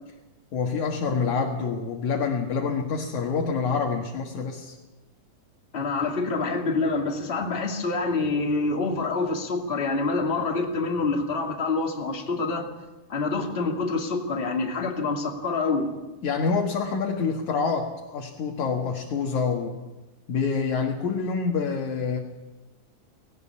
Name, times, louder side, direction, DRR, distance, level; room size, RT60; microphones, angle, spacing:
voice 1, 0.5-4.8 16.2-19.8 20.3-22.2, left 5 dB, 60° left, 0 dB, 2.9 m, -27 dB
voice 2, 5.7-12.7 13.1-15.9, left 3 dB, 20° left, 1 dB, 2.2 m, -26 dB
19.0 x 18.0 x 8.6 m, 1.1 s
omnidirectional pair, 4.0 m